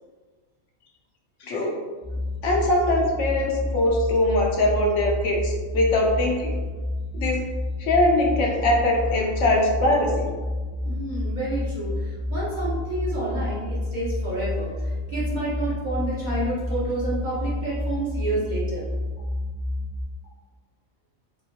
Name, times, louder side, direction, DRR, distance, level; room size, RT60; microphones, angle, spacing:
voice 1, 1.4-1.7 2.4-6.5 7.1-7.4 7.8-10.3, left 1 dB, 70° left, -1 dB, 0.9 m, -22 dB
sound 1, 2.0-20.0, left 1 dB, 25° left, 0.4 m, -29 dB
voice 2, 10.8-18.9, right 2 dB, 45° right, -8 dB, 0.7 m, -29 dB
3.0 x 2.8 x 2.8 m, 1.4 s
omnidirectional pair, 1.4 m